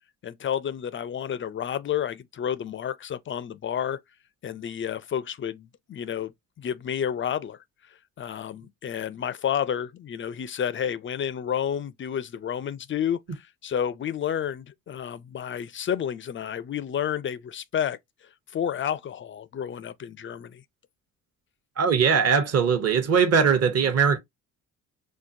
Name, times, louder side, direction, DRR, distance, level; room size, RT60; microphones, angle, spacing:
voice 1, 0.2-4.0 4.4-6.3 6.6-7.6 8.2-18.0 18.5-20.6, left 9 dB, 30° left, 0.4 m, -30 dB
voice 2, 21.8-24.2, right 6 dB, 35° right, 0.9 m, -20 dB
4.4 x 2.2 x 2.6 m
hypercardioid pair, 50°, 44 cm